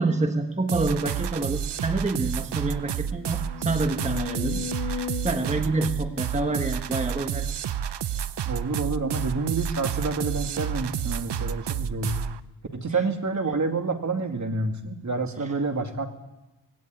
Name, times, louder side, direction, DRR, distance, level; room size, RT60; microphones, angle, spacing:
voice 1, 0.0-7.6 12.9-13.0 15.4-15.5, right 2 dB, 15° right, 5 dB, 1.4 m, -28 dB
sound 1, 0.7-12.4, right 9 dB, 75° right, 0.8 m, -30 dB
sound 2, 1.7-1.8 2.2-2.3 2.8-7.0 7.7-7.8, left 6 dB, 55° left, 2.1 m, -37 dB
voice 2, 8.5-12.2 12.7-16.1, right 3 dB, 45° right, 5 dB, 2.3 m, -28 dB
19.0 x 17.0 x 9.2 m, 1.0 s
wide cardioid pair, 100°, 41 cm